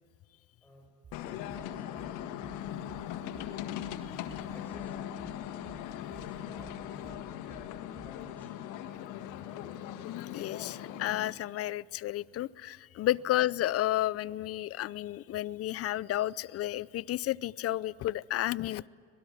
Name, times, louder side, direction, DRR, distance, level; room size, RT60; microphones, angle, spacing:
sound 1, 1.0-9.4, right 4 dB, 30° right, 3.7 m, -55 dB
sound 2, 1.1-11.3, left 11 dB, 80° left, 1.6 m, -40 dB
voice 1, 1.4-2.6 4.5-5.7 6.1-8.7 13.2-13.3, left 1 dB, 5° left, 0 dB, 7.8 m, -55 dB
voice 2, 10.0-18.9, left 14 dB, 50° left, 21 dB, 0.6 m, -32 dB
25.5 x 19.5 x 8.6 m, 2.3 s
supercardioid pair, 95°, 30 cm